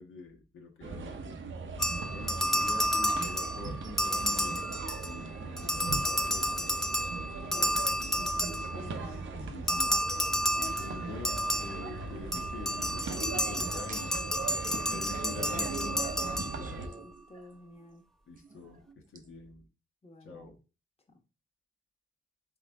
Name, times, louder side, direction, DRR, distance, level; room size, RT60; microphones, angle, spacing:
voice 1, 0.0-1.4 2.1-4.6 5.0-6.7 7.3-7.8 8.7-9.0 9.5-9.9 10.5-14.3 14.9-16.1 16.5-16.9 18.3-18.8 19.1-19.7 20.2-20.6, left 3 dB, 75° left, 1 dB, 1.2 m, -45 dB
sound 1, 0.8-16.9, right 4 dB, 65° right, 0.8 m, -39 dB
sound 2, 1.8-5.3 5.6-9.0 9.7-16.9, equal, ahead, 0.5 m, -31 dB
voice 2, 7.5-9.6 16.8-18.0 20.0-20.5 21.1-21.2, left 1 dB, 30° left, 2 dB, 1.3 m, -50 dB
sound 3, 13.9-14.3 14.8-17.5 18.4-19.2, right 5 dB, 40° right, 0.7 m, -43 dB
3.8 x 3.8 x 3.6 m, 0.32 s
cardioid pair, 50°, 21 cm